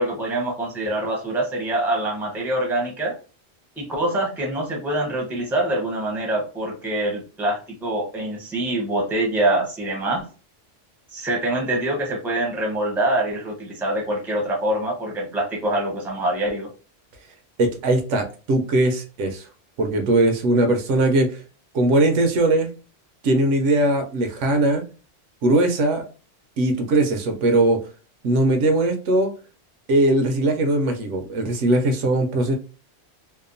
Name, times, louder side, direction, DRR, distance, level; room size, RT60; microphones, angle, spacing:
voice 1, 0.0-3.2 3.8-10.3 11.1-16.7, right 1 dB, ahead, -1 dB, 0.6 m, -25 dB
voice 2, 17.6-19.5 19.8-21.4 21.7-22.7 23.2-24.8 25.4-26.1 26.6-27.8 28.2-29.3 29.9-32.5, right 2 dB, 75° right, 5 dB, 0.9 m, -20 dB
2.8 x 2.1 x 2.5 m, 0.34 s
omnidirectional pair, 1.3 m